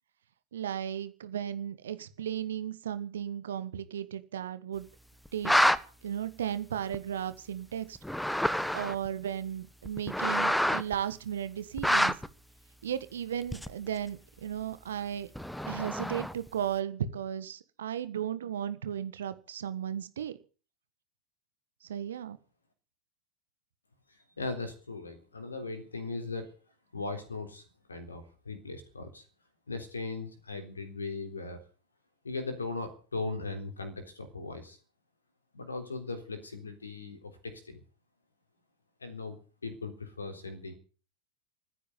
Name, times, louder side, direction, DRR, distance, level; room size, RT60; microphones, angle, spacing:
voice 1, 0.5-4.9 5.3-5.5 6.0-8.0 8.7-12.1 12.8-15.3 15.7-20.3 21.9-22.4, right 9 dB, 65° right, 14 dB, 1.5 m, -35 dB
sound 1, 5.3-5.8 6.9-7.0 8.0-9.1 9.9-10.9 11.8-12.3 13.5-13.9 15.4-16.5, equal, ahead, 1.1 m, -27 dB
voice 2, 24.1-26.5 26.9-27.6 27.9-29.2 29.7-31.6 32.2-34.8 35.5-37.8 39.0-40.7, left 3 dB, 75° left, 7 dB, 3.6 m, -38 dB
14.0 x 10.0 x 9.3 m, 0.38 s
figure-of-eight pair, 90°, 0 cm